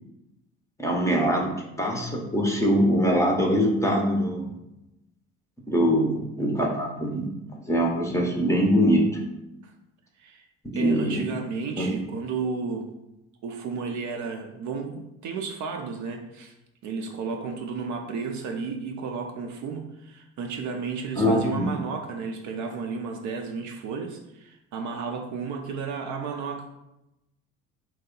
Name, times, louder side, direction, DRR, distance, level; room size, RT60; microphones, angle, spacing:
voice 1, 0.8-1.5 1.8-4.5 5.7-9.0 10.7-11.2 11.8-11.9 21.2-21.7, equal, 10° left, -1 dB, 0.6 m, -23 dB
voice 2, 10.7-12.9 13.4-16.5 16.8-26.8, right 5 dB, 45° right, 3 dB, 0.5 m, -33 dB
2.9 x 2.1 x 3.7 m, 0.91 s
hypercardioid pair, 60°, 39 cm